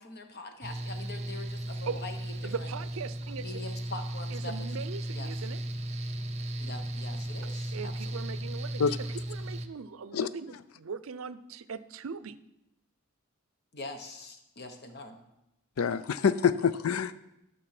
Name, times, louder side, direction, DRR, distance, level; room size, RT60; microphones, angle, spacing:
voice 1, 0.0-2.7 3.4-4.5 5.1-5.5 6.6-8.4 13.7-15.2, left 2 dB, 50° left, 6 dB, 1.3 m, -44 dB
Mechanical fan, 0.6-9.7, right 1 dB, 30° right, 0.8 m, -36 dB
voice 2, 2.4-3.6 4.3-5.6 7.7-8.8 9.3-12.4, right 5 dB, 80° right, 16 dB, 0.5 m, -40 dB
voice 3, 15.8-17.1, left 6 dB, 80° left, 15 dB, 0.5 m, -26 dB
11.5 x 6.9 x 5.9 m, 0.88 s
head